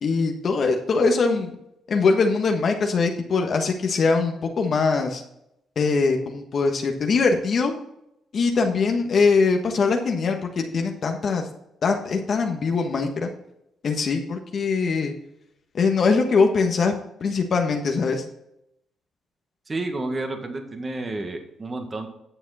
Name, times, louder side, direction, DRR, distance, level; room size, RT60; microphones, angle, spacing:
voice 1, 0.0-1.6 1.9-5.2 5.8-7.7 8.3-11.5 11.8-13.3 13.8-15.1 15.7-16.9 17.2-18.2, left 4 dB, 50° left, 3 dB, 1.3 m, -22 dB
voice 2, 19.7-22.1, right 2 dB, 30° right, 5 dB, 1.8 m, -30 dB
10.0 x 7.1 x 4.1 m, 0.80 s
cardioid pair, 90°, 0 cm